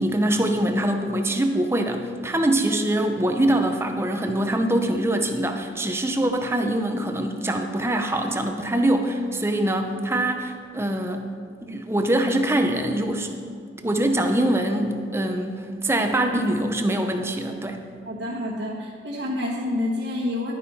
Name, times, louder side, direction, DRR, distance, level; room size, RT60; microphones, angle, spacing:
voice 1, 0.0-11.3 11.6-13.3 13.8-17.8, right 1 dB, 15° right, 5 dB, 0.7 m, -23 dB
voice 2, 18.1-20.5, left 1 dB, 80° right, -4 dB, 1.3 m, -28 dB
11.0 x 9.9 x 4.2 m, 2.1 s
head